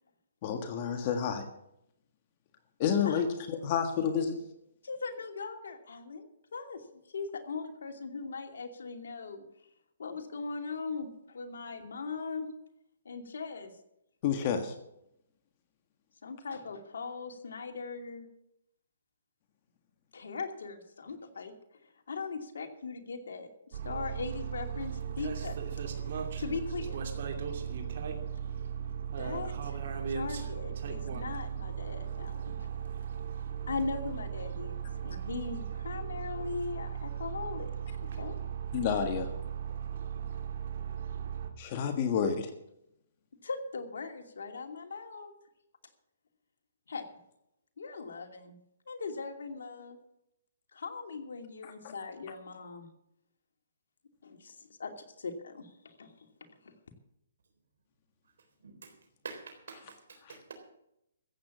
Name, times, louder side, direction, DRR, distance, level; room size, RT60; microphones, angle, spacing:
voice 1, 0.4-1.5 2.8-4.4 14.2-14.7 38.7-39.3 41.6-42.5 51.6-51.9 60.2-60.4, left 7 dB, 35° left, 7 dB, 1.6 m, -30 dB
voice 2, 4.8-9.4 10.0-12.5 13.0-13.7 16.2-18.3 20.1-21.5 22.1-25.6 26.4-27.1 29.2-29.8 30.1-32.7 33.7-38.4 43.4-45.3 46.9-47.1 47.8-48.6 48.9-50.0 50.7-52.9 54.2-56.1 56.6-56.7, left 4 dB, 75° left, 5 dB, 2.7 m, -39 dB
sound 1, 23.7-41.5, right 8 dB, 55° right, 2.7 m, -37 dB
voice 3, 59.2-60.5, right 5 dB, 75° right, 4 dB, 3.7 m, -46 dB
14.5 x 8.8 x 7.3 m, 0.79 s
hypercardioid pair, 160°, 0 cm